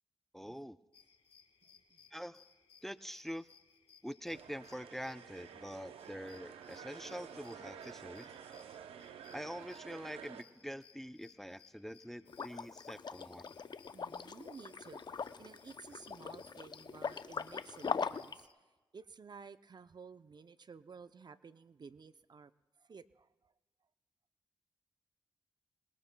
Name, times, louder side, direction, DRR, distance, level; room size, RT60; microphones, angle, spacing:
voice 1, 0.3-0.8 2.1-2.4 2.8-3.5 4.0-8.3 9.3-13.6, equal, 5° left, 13 dB, 0.6 m, -45 dB
sound 1, 0.9-18.5, left 7 dB, 75° left, 1.3 m, -65 dB
sound 2, 4.3-10.4, right 8 dB, 90° right, 0.7 m, -51 dB
Liquid, 12.3-18.4, left 5 dB, 50° left, 0.6 m, -41 dB
voice 2, 13.9-18.5 18.9-22.5 22.8-23.5, right 5 dB, 50° right, 13 dB, 0.6 m, -54 dB
26.0 x 21.0 x 2.2 m, 1.2 s
cardioid pair, 50°, 9 cm